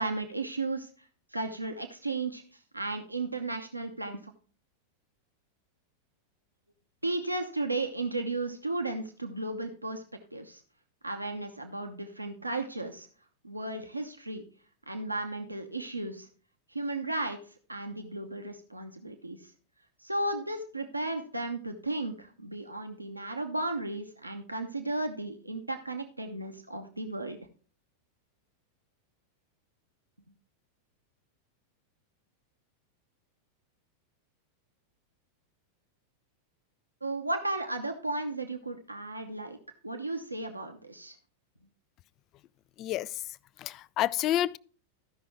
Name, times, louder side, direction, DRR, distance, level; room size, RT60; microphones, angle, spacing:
voice 1, 0.0-4.3 7.0-10.6 11.0-13.1 13.4-14.4 14.9-16.3 16.7-19.5 20.0-27.4 37.0-39.6 39.8-41.1, right 2 dB, 85° right, 0.8 m, -34 dB
voice 2, 43.6-44.6, left 12 dB, 35° left, 0.3 m, -29 dB
14.0 x 5.8 x 3.7 m
figure-of-eight pair, 90°, 0 cm